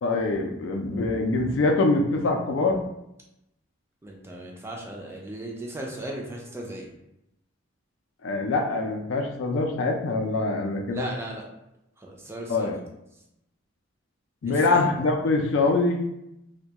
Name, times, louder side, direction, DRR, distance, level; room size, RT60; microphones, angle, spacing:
voice 1, 0.0-2.8 8.2-11.1 12.5-12.8 14.4-16.1, left 3 dB, 70° left, 3 dB, 0.4 m, -24 dB
voice 2, 4.0-6.9 10.9-11.4 12.0-12.7 14.4-14.8, right 1 dB, 15° right, 0 dB, 0.3 m, -36 dB
2.2 x 2.2 x 2.7 m, 0.85 s
head